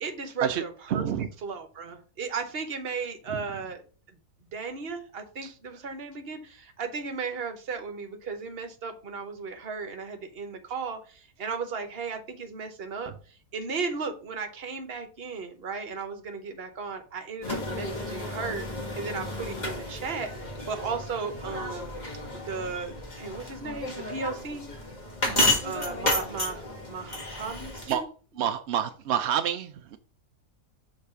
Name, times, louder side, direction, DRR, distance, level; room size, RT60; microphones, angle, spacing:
voice 1, 0.0-1.1 1.4-3.8 4.5-13.1 13.5-18.7 18.9-20.3 20.7-21.9 22.3-24.6 25.3-28.1 28.4-28.5, right 5 dB, 45° right, 7 dB, 1.0 m, -35 dB
voice 2, 0.9-1.3 3.3-3.4 5.4-5.5 25.2-25.6 27.9-28.0 28.4-30.0, right 9 dB, 75° right, 8 dB, 0.6 m, -28 dB
sound 1, 17.4-28.0, left 2 dB, 30° left, 1.6 m, -32 dB
6.6 x 3.2 x 5.5 m, 0.38 s
omnidirectional pair, 1.7 m